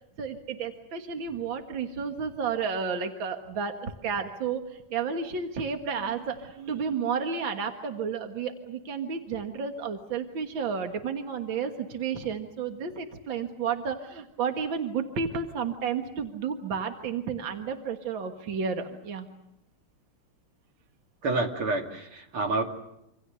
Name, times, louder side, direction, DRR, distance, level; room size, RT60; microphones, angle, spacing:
voice 1, 0.2-19.3, right 6 dB, 65° right, 5 dB, 2.3 m, -32 dB
voice 2, 21.2-22.6, right 3 dB, 85° right, 3 dB, 3.5 m, -28 dB
27.0 x 26.5 x 6.7 m, 0.85 s
omnidirectional pair, 2.3 m